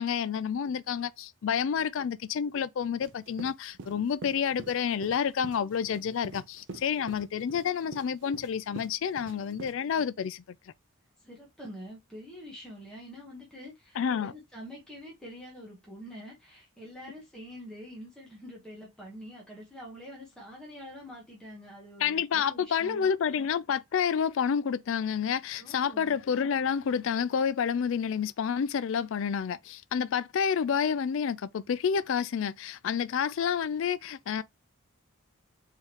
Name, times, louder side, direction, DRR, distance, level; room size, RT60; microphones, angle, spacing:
voice 1, 0.0-10.4 14.0-14.3 22.0-34.4, left 7 dB, 60° left, 0.3 m, -29 dB
sound 1, 3.0-9.7, right 3 dB, 55° right, 0.6 m, -46 dB
voice 2, 11.2-23.1 25.6-26.2, equal, 5° left, 1.1 m, -46 dB
4.4 x 3.6 x 2.9 m
head